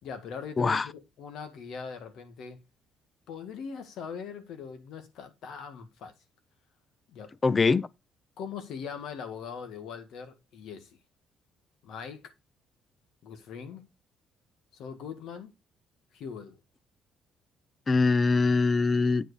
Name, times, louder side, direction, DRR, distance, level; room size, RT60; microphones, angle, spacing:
voice 1, 0.0-2.6 3.3-6.1 7.1-7.3 8.4-11.0 11.8-12.3 13.2-13.9 14.7-15.5 16.1-16.6, left 6 dB, 70° left, 1.7 m, -41 dB
voice 2, 0.6-0.9 7.4-7.9 17.9-19.3, left 4 dB, 25° left, 0.4 m, -23 dB
8.9 x 5.1 x 4.8 m
cardioid pair, 135°, 0 cm